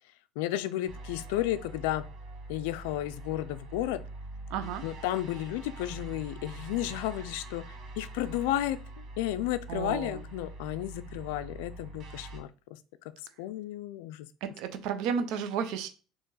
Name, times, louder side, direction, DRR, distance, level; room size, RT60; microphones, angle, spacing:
voice 1, 0.4-2.0 2.5-4.0 4.8-7.7 8.0-12.8 13.4-14.3, left 13 dB, 85° left, 0.3 m, -33 dB
sound 1, 0.9-12.4, right 2 dB, 50° right, 1.1 m, -44 dB
voice 2, 4.5-4.8 9.7-10.2 14.4-15.9, right 7 dB, 70° right, 0.6 m, -32 dB
4.0 x 2.9 x 3.8 m
supercardioid pair, 100°, 0 cm